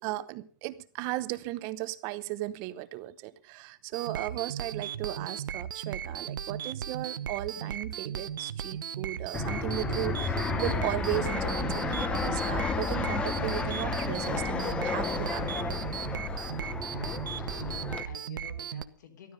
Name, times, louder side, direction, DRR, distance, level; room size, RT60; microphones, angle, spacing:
voice 1, 0.0-15.5, right 16 dB, 25° right, 0.8 m, -36 dB
sound 1, 3.9-18.8, right 9 dB, 75° right, 1.0 m, -37 dB
Fixed-wing aircraft airplane, 9.3-18.0, left 4 dB, 10° left, 0.8 m, -32 dB
voice 2, 17.4-19.3, left 7 dB, 60° left, 3.3 m, -50 dB
14.0 x 13.0 x 5.4 m
hypercardioid pair, 165°, 11 cm